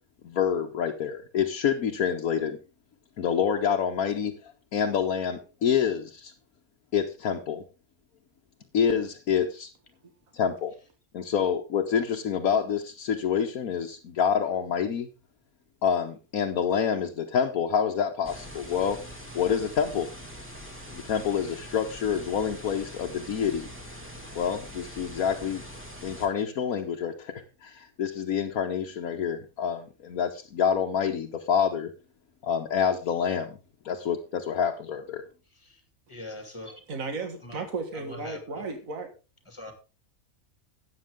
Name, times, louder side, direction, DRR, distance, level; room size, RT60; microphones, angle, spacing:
voice 1, 0.2-2.6 3.2-4.3 4.7-6.3 6.9-7.6 8.7-9.7 10.3-10.7 11.1-15.1 15.8-19.0 19.3-20.1 20.9-23.7 24.3-25.6 26.0-27.3 27.6-31.9 32.4-33.6 33.8-35.2, left 7 dB, 80° left, 1.5 m, -27 dB
sound 1, 18.2-26.3, equal, 10° right, 2.2 m, -43 dB
voice 2, 36.1-36.8 37.4-37.7 37.9-38.6 39.5-39.7, left 2 dB, 20° left, 2.5 m, -42 dB
voice 3, 36.9-39.1, right 4 dB, 70° right, 2.1 m, -34 dB
13.0 x 8.9 x 3.6 m
omnidirectional pair, 1.5 m